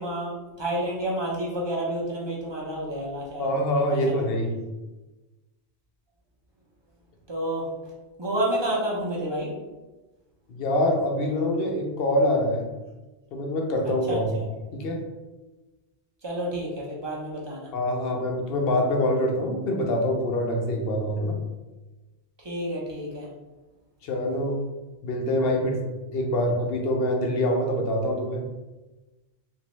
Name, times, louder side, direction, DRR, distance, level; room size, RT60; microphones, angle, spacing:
voice 1, 0.0-3.5 3.9-4.0 7.3-7.6 8.2-9.5 14.1-14.4 16.2-17.7 22.4-23.3, right 1 dB, 30° right, -4 dB, 0.6 m, -29 dB
voice 2, 3.4-4.5 10.5-12.7 13.3-14.4 14.7-15.0 17.7-21.4 24.0-24.6 25.0-25.8 26.1-28.4, left 1 dB, 65° left, 2 dB, 0.8 m, -25 dB
3.0 x 2.6 x 3.0 m, 1.1 s
omnidirectional pair, 1.2 m